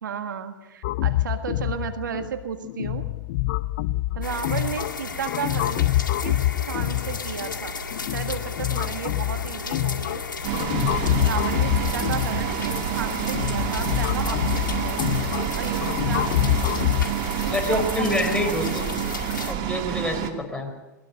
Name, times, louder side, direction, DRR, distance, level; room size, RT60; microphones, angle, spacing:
voice 1, 0.0-3.1 4.1-5.9 6.2-7.9 8.1-10.2 11.2-15.1 15.5-16.3 17.4-18.5, right 7 dB, 80° right, 8 dB, 1.6 m, -33 dB
sound 1, 0.8-17.1, left 15 dB, 60° left, 0.6 m, -26 dB
sound 2, 4.2-19.5, left 4 dB, 90° left, 2.0 m, -34 dB
sound 3, 10.4-20.3, right 10 dB, 45° right, 2.5 m, -28 dB
voice 2, 10.7-11.1 17.5-18.9 19.5-20.7, left 1 dB, 10° left, 4 dB, 4.5 m, -27 dB
21.0 x 20.0 x 6.5 m, 1.1 s
hypercardioid pair, 100°, 10 cm